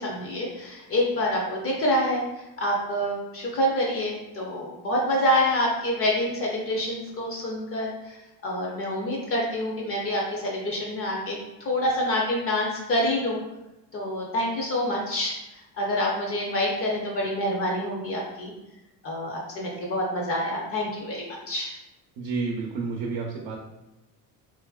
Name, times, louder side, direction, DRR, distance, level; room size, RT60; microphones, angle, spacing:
voice 1, 0.0-13.4 13.9-15.3 15.8-18.5 19.0-21.8, left 1 dB, 35° left, -2 dB, 0.5 m, -27 dB
voice 2, 22.2-23.6, right 4 dB, 85° right, -1 dB, 0.6 m, -30 dB
2.9 x 2.5 x 2.3 m, 0.96 s
cardioid pair, 155°, 41 cm